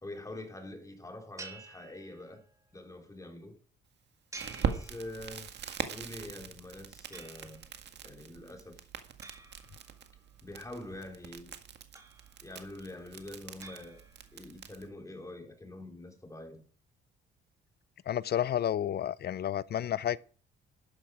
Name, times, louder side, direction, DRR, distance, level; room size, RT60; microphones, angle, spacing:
voice 1, 0.0-2.4 2.7-3.6 4.5-5.5 5.8-7.6 8.0-8.8 10.4-11.5 12.4-14.0 14.3-16.6, left 1 dB, 15° left, 3.8 m, -45 dB
sound 1, 1.4-2.6 4.3-5.6 7.1-7.8 9.2-10.4 12.0-12.7 13.6-14.5, right 3 dB, 15° right, 2.8 m, -51 dB
Crackle, 4.4-14.9, right 7 dB, 60° right, 1.8 m, -41 dB
voice 2, 18.1-20.2, left 10 dB, 55° left, 0.6 m, -31 dB
12.5 x 10.0 x 5.0 m
cardioid pair, 90°, 20 cm